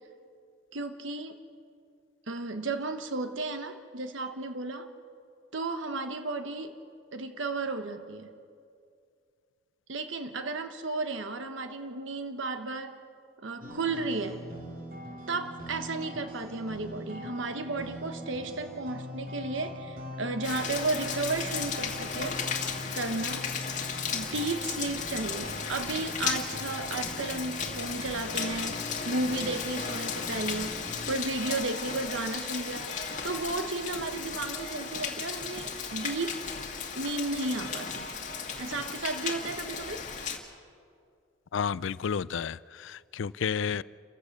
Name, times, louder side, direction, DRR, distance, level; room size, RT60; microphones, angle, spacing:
voice 1, 0.7-1.4 2.3-4.9 5.5-6.7 7.1-8.3 9.9-13.0 13.4-14.4 15.3-22.4 22.9-23.5 24.1-28.8 29.0-32.9 33.2-36.4 36.9-38.1 38.6-40.0, right 3 dB, 85° right, 1.1 m, -33 dB
sound 1, 13.6-31.2, left 1 dB, 45° right, 2.9 m, -42 dB
Rain, 20.4-40.4, left 6 dB, 40° left, 1.9 m, -35 dB
voice 2, 41.5-43.8, left 7 dB, 80° left, 0.4 m, -31 dB
29.0 x 15.5 x 6.7 m
head